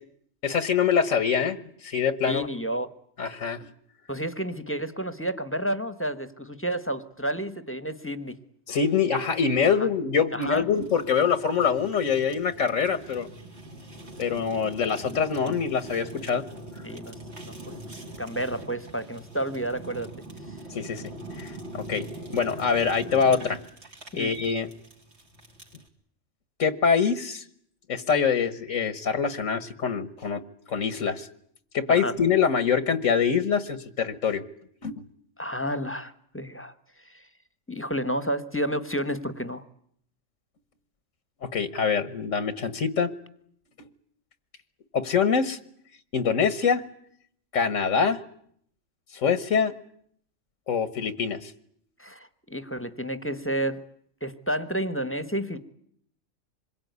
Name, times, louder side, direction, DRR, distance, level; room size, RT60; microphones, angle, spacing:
voice 1, 0.4-2.5 3.2-3.6 8.7-13.3 14.2-16.4 20.7-21.0 21.4-22.0 22.3-23.6 24.1-24.7 26.6-27.4 27.9-30.4 30.7-31.3 31.7-34.4 34.8-35.1 41.5-43.1 44.9-45.6 46.1-46.8 47.5-48.2 49.1-49.7 50.7-51.5, left 6 dB, 80° left, 13 dB, 1.7 m, -24 dB
voice 2, 2.3-2.9 4.1-8.4 10.3-10.6 16.8-17.1 17.5-17.6 18.2-20.1 20.5-20.6 24.1-24.3 31.9-32.1 35.4-36.7 37.0-37.2 37.7-39.6 52.0-53.8 54.2-55.6, right 1 dB, 10° left, 13 dB, 1.3 m, -30 dB
Fire, 10.7-25.9, right 1 dB, 60° right, 3.8 m, -42 dB
26.5 x 22.0 x 9.5 m, 0.67 s
omnidirectional pair, 1.3 m